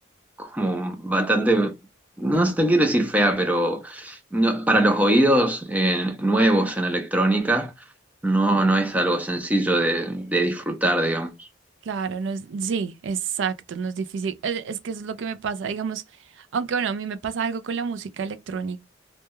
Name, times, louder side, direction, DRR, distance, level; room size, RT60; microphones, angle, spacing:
voice 1, 0.4-1.7 2.2-7.7 8.2-11.5, right 1 dB, 10° right, 0.4 m, -22 dB
voice 2, 11.9-16.0 16.5-18.8, right 6 dB, 80° right, 0.4 m, -29 dB
2.2 x 2.1 x 2.9 m
head